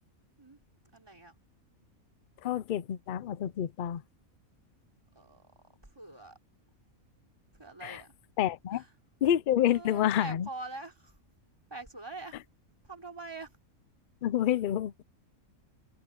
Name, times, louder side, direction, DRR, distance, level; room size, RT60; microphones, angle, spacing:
voice 1, 0.9-1.3 5.1-6.4 7.6-8.1 8.7-8.9 9.6-11.2 11.7-12.4 12.8-13.6, right 2 dB, 15° right, 3.8 m, -44 dB
voice 2, 2.4-4.0 7.8-8.0 8.4-8.8 9.2-10.5 14.2-14.9, left 11 dB, 60° left, 0.5 m, -28 dB
omnidirectional pair, 1.5 m